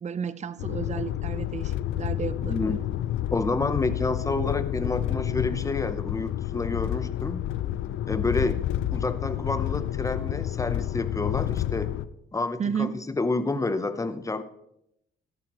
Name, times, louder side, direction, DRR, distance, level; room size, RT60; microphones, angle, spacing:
voice 1, 0.0-2.7 12.6-12.9, right 7 dB, 35° right, 16 dB, 0.6 m, -32 dB
sound 1, 0.6-12.1, left 12 dB, 80° left, 0.5 m, -29 dB
voice 2, 2.4-2.8 3.3-7.4 8.1-8.6 8.9-11.9 12.3-12.9 13.1-14.4, left 3 dB, 15° left, 11 dB, 0.8 m, -29 dB
13.0 x 10.5 x 3.1 m, 0.80 s
cardioid pair, 90°, 20 cm